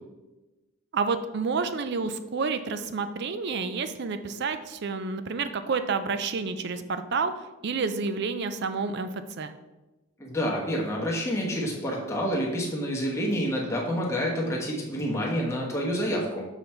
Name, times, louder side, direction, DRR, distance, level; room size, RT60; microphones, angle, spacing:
voice 1, 0.9-7.3 7.6-9.5, right 4 dB, 50° right, 10 dB, 0.4 m, -29 dB
voice 2, 10.2-16.4, equal, 10° left, -3 dB, 1.2 m, -28 dB
7.0 x 4.0 x 4.4 m, 1.1 s
head